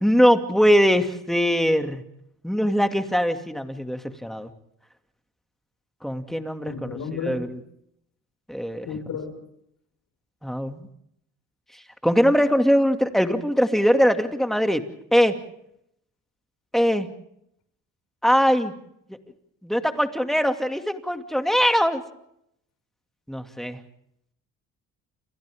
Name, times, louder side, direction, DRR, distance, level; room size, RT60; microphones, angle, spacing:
voice 1, 0.0-2.0 2.4-4.5 6.0-7.0 7.3-7.6 8.5-8.9 10.4-10.9 12.0-14.8 15.1-15.4 16.7-17.1 18.2-18.7 19.6-22.0 23.3-23.8, equal, ahead, 6 dB, 2.5 m, -21 dB
voice 2, 6.6-7.5 8.9-9.3, left 6 dB, 75° left, 8 dB, 5.5 m, -32 dB
30.0 x 27.5 x 3.7 m, 0.74 s
cardioid pair, 90°, 30 cm